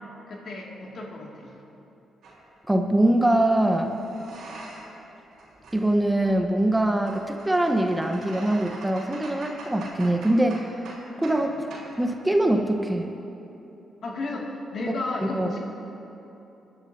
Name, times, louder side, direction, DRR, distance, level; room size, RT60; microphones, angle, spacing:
voice 1, 0.3-1.5 11.4-11.6 14.0-15.6, left 2 dB, 65° left, -1 dB, 2.1 m, -33 dB
sound 1, 2.2-2.4 3.5-5.0 5.3-11.4 11.7-11.9, right 2 dB, 75° right, 3.2 m, -44 dB
voice 2, 2.7-3.9 5.7-10.7 11.2-11.5 12.0-13.1 14.9-15.0 15.2-15.5, right 1 dB, 15° right, 4 dB, 0.9 m, -23 dB
21.0 x 10.5 x 2.7 m, 3.0 s
supercardioid pair, 50°, 0 cm